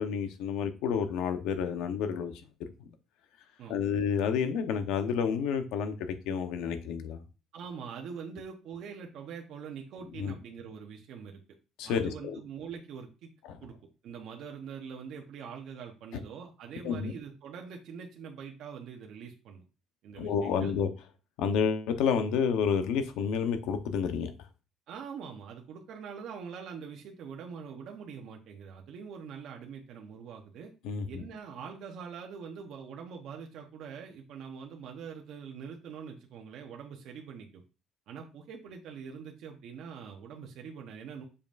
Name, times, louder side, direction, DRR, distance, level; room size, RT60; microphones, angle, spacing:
voice 1, 0.0-2.3 2.8-2.9 3.7-7.2 10.2-10.3 11.8-12.4 13.4-13.6 16.1-16.2 16.8-17.1 20.2-20.9 21.4-24.3 30.8-31.2, left 7 dB, 85° left, 8 dB, 0.9 m, -30 dB
voice 2, 7.5-11.4 11.9-13.3 13.6-13.7 14.0-19.6 20.0-20.8 24.9-30.7 31.1-37.6 38.1-41.2, right 6 dB, 60° right, 1 dB, 0.9 m, -44 dB
7.0 x 5.3 x 2.6 m, 0.32 s
cardioid pair, 160°, 0 cm